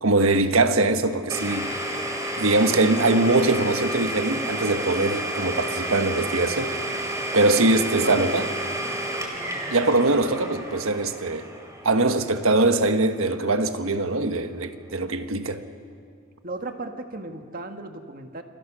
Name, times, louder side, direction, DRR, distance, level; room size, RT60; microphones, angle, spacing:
voice 1, 0.0-1.8 2.4-6.7 7.3-8.5 9.7-11.5 11.8-15.6, right 2 dB, 85° right, 1.4 m, -22 dB
Domestic sounds home sounds, 1.3-13.0, right 1 dB, 15° right, 3.4 m, -31 dB
voice 2, 7.6-8.5 16.4-18.4, right 2 dB, 45° right, 1.7 m, -35 dB
29.5 x 28.0 x 6.2 m
head